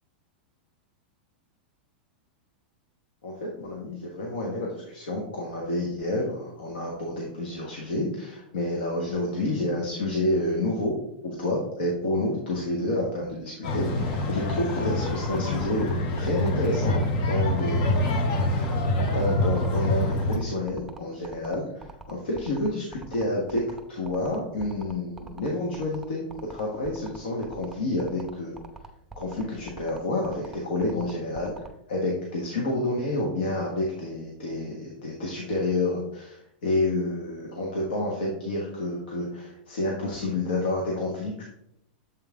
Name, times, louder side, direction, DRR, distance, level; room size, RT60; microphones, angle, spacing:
voice 1, 3.2-10.9 11.2-18.2 18.5-23.6 23.9-26.2 26.5-28.6 29.2-41.4, left 2 dB, 85° left, -2 dB, 1.4 m, -29 dB
sound 1, 13.6-20.4, left 1 dB, 55° left, 1.0 m, -26 dB
sound 2, 13.9-31.7, right 4 dB, 5° right, 0.7 m, -43 dB
7.5 x 3.6 x 3.7 m, 0.76 s
hypercardioid pair, 125°, 5 cm